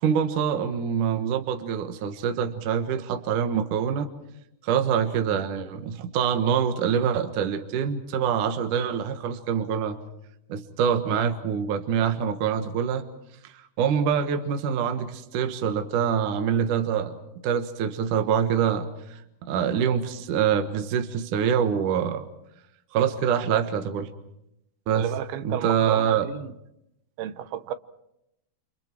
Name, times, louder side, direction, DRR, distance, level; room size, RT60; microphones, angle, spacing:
voice 1, 0.0-4.1 4.6-10.0 10.5-13.0 13.4-17.2 17.4-19.2 19.5-22.3 22.9-24.1 24.9-25.1 25.4-26.3, right 8 dB, 65° right, 2.7 m, -25 dB
voice 2, 24.9-26.5 27.2-27.7, right 10 dB, 85° right, 3.0 m, -32 dB
29.5 x 28.5 x 4.6 m
omnidirectional pair, 4.3 m